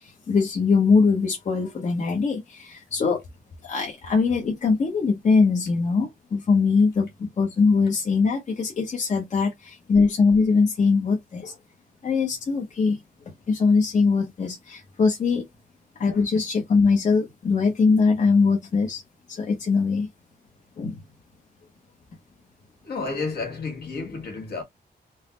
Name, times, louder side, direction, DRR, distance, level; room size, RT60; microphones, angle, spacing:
voice 1, 0.3-3.2 3.6-11.6 12.0-13.0 13.5-15.5 16.0-19.0 19.3-20.1 20.8-21.0, left 4 dB, 45° left, 0.9 m, -22 dB
voice 2, 22.8-24.6, left 4 dB, 70° left, 1.7 m, -31 dB
3.9 x 2.0 x 3.8 m
wide cardioid pair, 175°, 17 cm